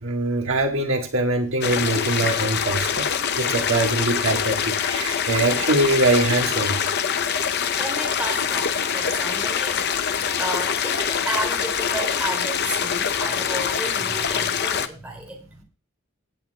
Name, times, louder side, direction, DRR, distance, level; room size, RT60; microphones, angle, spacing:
voice 1, 0.0-6.8, right 2 dB, 65° right, 3 dB, 1.5 m, -23 dB
sound 1, 1.6-14.9, left 7 dB, 50° left, 0.6 m, -24 dB
voice 2, 7.8-15.6, right 1 dB, 5° right, -1 dB, 3.0 m, -32 dB
16.5 x 8.2 x 2.2 m, 0.35 s
head